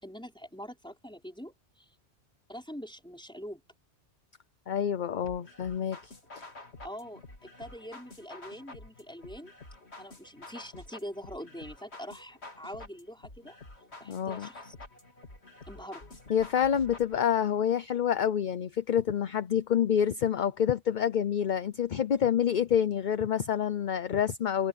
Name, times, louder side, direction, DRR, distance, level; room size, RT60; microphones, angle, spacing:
voice 1, 0.0-1.9 2.5-3.6 6.8-9.5 10.0-13.6 14.0-14.7 15.7-16.0, equal, 5° left, 4.7 m, -44 dB
voice 2, 4.7-6.0 14.1-14.5 16.3-24.7, left 9 dB, 50° left, 0.8 m, -27 dB
sound 1, 5.2-17.2, left 2 dB, 65° left, 3.5 m, -49 dB
omnidirectional pair, 1.2 m